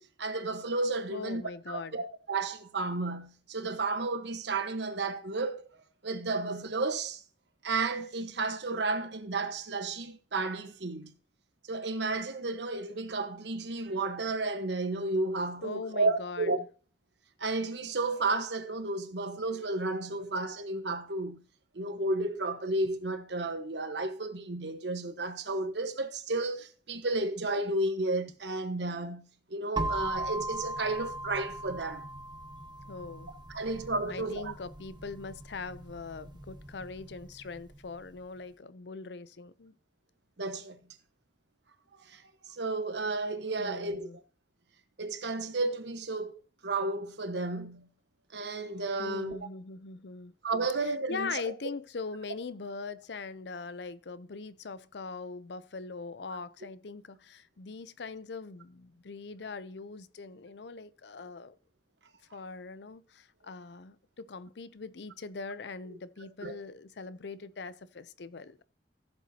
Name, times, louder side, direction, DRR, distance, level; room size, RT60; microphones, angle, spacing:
voice 1, 0.0-5.7 6.0-7.2 7.6-11.1 11.6-16.6 17.4-21.4 21.7-32.1 33.5-34.5 40.4-40.8 42.1-42.2 42.5-44.1 45.0-46.3 46.6-47.9 48.3-49.4 50.4-51.4 66.4-66.6, right 3 dB, 70° right, 1.2 m, -32 dB
voice 2, 1.1-2.0 15.6-16.7 32.8-33.3 34.1-39.8 43.6-44.2 49.0-50.3 50.8-61.6 62.3-68.6, left 4 dB, 65° left, 0.6 m, -41 dB
sound 1, 29.8-37.6, right 1 dB, 25° right, 1.2 m, -38 dB
15.0 x 7.4 x 2.8 m
head